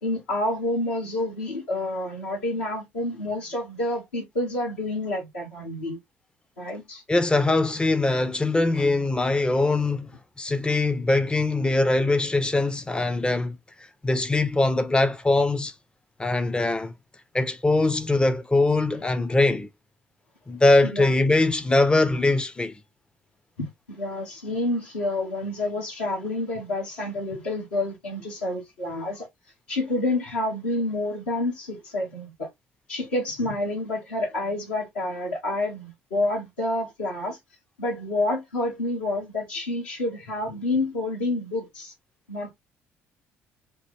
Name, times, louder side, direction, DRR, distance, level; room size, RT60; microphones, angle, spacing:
voice 1, 0.0-6.0 6.6-7.0 20.9-21.1 23.6-29.3 29.7-32.5 32.9-37.4 37.8-41.9 42.3-42.5, left 2 dB, 75° left, 1.9 m, -28 dB
voice 2, 7.1-10.1 10.4-13.6 14.0-15.7 16.2-16.9 17.3-19.7 20.5-22.8, left 2 dB, 15° left, 0.6 m, -22 dB
4.3 x 2.4 x 3.2 m
figure-of-eight pair, 50°, 7 cm